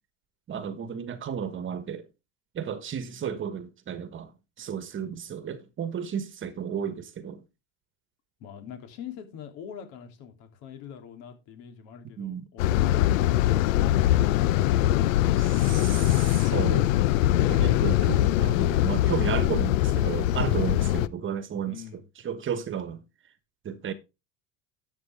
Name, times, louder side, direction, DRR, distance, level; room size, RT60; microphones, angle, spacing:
voice 1, 0.5-2.0 2.5-4.3 4.6-7.4 12.2-12.5 15.4-16.9 17.5-21.8 22.2-23.0 23.6-23.9, right 8 dB, 30° right, 1.3 m, -33 dB
voice 2, 8.4-16.3 21.7-22.0, left 8 dB, 65° left, 3.4 m, -44 dB
sound 1, 12.6-21.1, left 13 dB, 85° left, 0.7 m, -22 dB
12.5 x 7.6 x 3.6 m
supercardioid pair, 120°, 38 cm